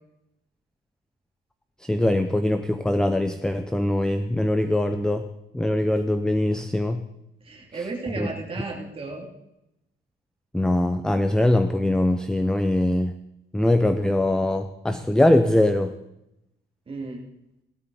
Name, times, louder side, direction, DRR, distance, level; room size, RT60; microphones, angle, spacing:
voice 1, 1.9-5.2 5.5-7.0 8.2-8.3 10.5-13.1 13.5-15.9, left 1 dB, 5° left, 9 dB, 0.5 m, -22 dB
voice 2, 7.4-9.3 16.9-17.2, right 3 dB, 25° right, -1 dB, 2.8 m, -33 dB
17.0 x 13.0 x 4.1 m, 0.85 s
cardioid pair, 170°, 21 cm